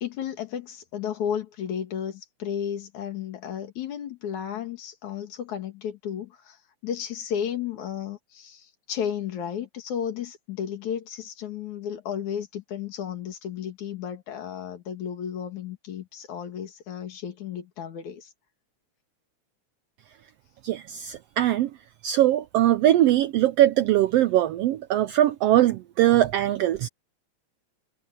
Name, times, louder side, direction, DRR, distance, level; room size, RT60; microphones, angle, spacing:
voice 1, 0.0-18.3, left 9 dB, 75° left, 3.5 m, -33 dB
voice 2, 20.6-21.7 22.0-26.9, right 13 dB, 80° right, 1.4 m, -21 dB
omnidirectional pair, 3.3 m